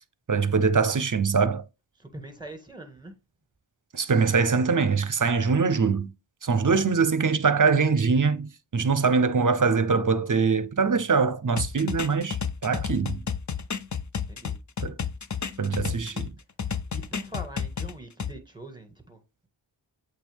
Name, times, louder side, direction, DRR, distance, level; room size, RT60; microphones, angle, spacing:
voice 1, 0.3-1.6 3.9-6.1 6.4-12.4 12.6-13.2 14.8-15.0 15.6-16.3, right 5 dB, 40° right, 0.7 m, -23 dB
voice 2, 2.0-3.1 14.3-14.6 16.9-19.2, right 1 dB, 10° right, 1.8 m, -42 dB
sound 1, 11.6-16.3 16.6-18.3, left 7 dB, 40° left, 0.5 m, -31 dB
8.1 x 3.4 x 3.5 m
wide cardioid pair, 45°, 48 cm